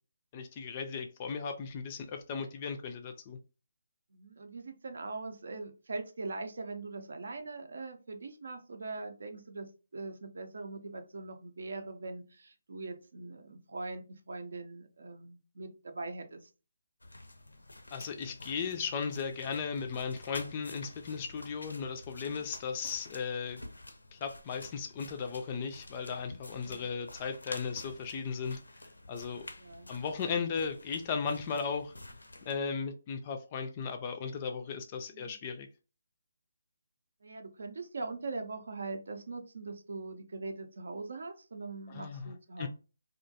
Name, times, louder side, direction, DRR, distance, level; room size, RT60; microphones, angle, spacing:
voice 1, 0.3-3.4 17.9-23.6 24.1-28.6 29.1-29.5 29.9-31.9 32.5-35.7 41.9-42.3 42.6-42.7, left 5 dB, 30° left, 0.3 m, -36 dB
voice 2, 4.1-16.5 22.2-22.5 26.6-26.9 29.6-29.9 35.1-35.4 37.2-42.7, right 3 dB, 65° right, 0.5 m, -42 dB
sound 1, 17.0-32.6, left 2 dB, 85° left, 0.5 m, -50 dB
2.3 x 2.2 x 2.7 m
figure-of-eight pair, 150°, 0 cm